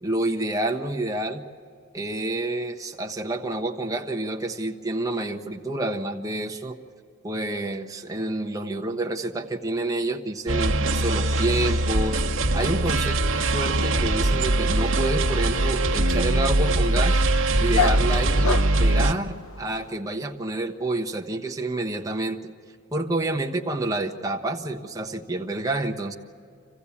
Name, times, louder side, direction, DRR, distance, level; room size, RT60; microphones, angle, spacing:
voice 1, 0.0-1.4 1.9-6.8 7.2-12.2 12.5-17.2 17.6-22.4 22.9-26.1, right 2 dB, 15° right, 3 dB, 1.1 m, -28 dB
sound 1, 10.5-19.1, right 2 dB, 65° right, 1.2 m, -22 dB
Dog, 14.6-20.0, left 6 dB, 80° left, 1.0 m, -33 dB
27.0 x 15.5 x 8.5 m, 2.4 s
head